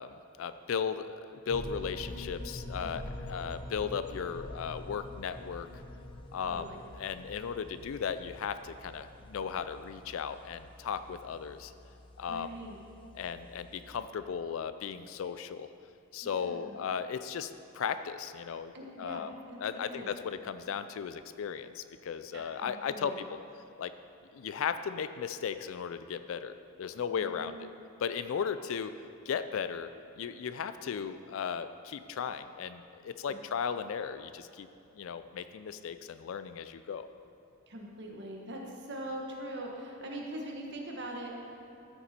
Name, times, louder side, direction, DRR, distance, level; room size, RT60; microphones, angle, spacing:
voice 1, 0.0-5.8 6.3-11.7 12.2-12.5 13.1-15.7 16.1-18.7 19.0-19.3 19.6-23.4 23.8-23.9 24.3-27.7 28.0-28.9 29.3-29.9 30.2-34.7 35.0-37.1, left 7 dB, 65° left, 11 dB, 0.4 m, -36 dB
sound 1, 1.5-14.1, left 1 dB, 25° left, 0.6 m, -46 dB
voice 2, 6.4-6.8 12.3-12.8 16.2-16.8 18.7-20.1 22.3-23.2 27.1-27.7 33.3-33.4 37.7-41.6, right 1 dB, 55° right, 0 dB, 1.4 m, -42 dB
13.5 x 7.1 x 4.3 m, 2.7 s
head